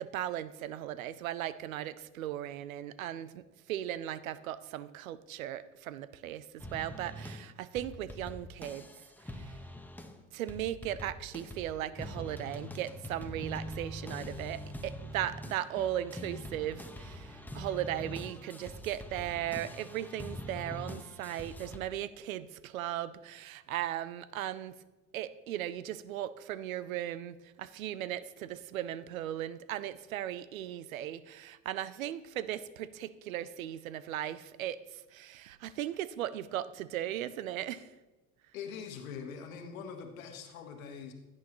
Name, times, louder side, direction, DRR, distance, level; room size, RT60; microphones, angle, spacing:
voice 1, 0.0-8.9 9.3-9.5 10.3-24.8 25.1-34.8 35.1-37.9, right 12 dB, 90° right, 16 dB, 0.5 m, -37 dB
sound 1, 6.6-7.5 7.8-10.2 10.5-21.8, equal, 5° left, 1.2 m, -44 dB
voice 2, 38.5-41.1, left 6 dB, 85° left, 5 dB, 1.4 m, -43 dB
16.0 x 8.9 x 3.0 m, 1.1 s
hypercardioid pair, 60°, 40 cm